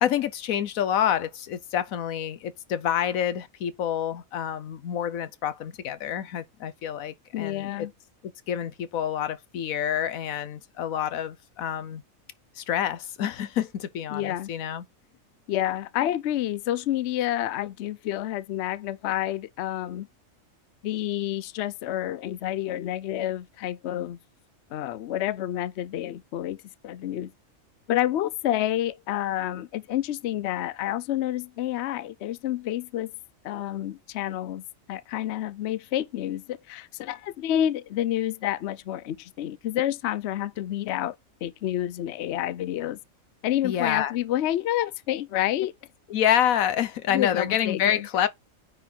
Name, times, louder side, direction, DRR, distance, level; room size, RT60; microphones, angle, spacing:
voice 1, 0.0-7.9 8.5-12.0 12.6-14.8 43.6-44.1 46.1-48.3, left 10 dB, 80° left, 1.2 m, -27 dB
voice 2, 7.3-7.9 14.1-14.5 15.5-20.1 20.8-24.2 24.7-26.6 26.8-27.3 27.9-33.1 33.4-34.6 34.9-41.1 41.4-43.0 43.4-45.7 47.1-48.1, left 12 dB, 65° left, 0.8 m, -29 dB
9.4 x 4.0 x 4.4 m
omnidirectional pair, 1.4 m